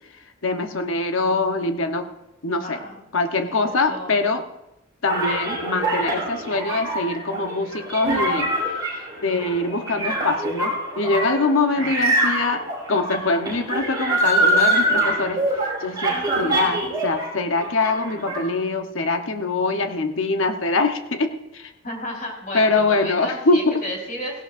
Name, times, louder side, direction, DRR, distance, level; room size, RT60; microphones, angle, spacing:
voice 1, 0.4-2.1 2.4-2.8 3.1-4.4 5.0-8.5 8.9-21.7 22.5-23.8, left 3 dB, 70° left, 6 dB, 1.0 m, -23 dB
voice 2, 2.6-3.0 3.4-4.3 11.7-11.9 21.8-24.4, left 1 dB, 40° left, -1 dB, 4.2 m, -33 dB
sound 1, 5.1-17.3 17.6-18.4, right 1 dB, 20° right, 5.4 m, -24 dB
17.0 x 17.0 x 2.6 m, 0.90 s
head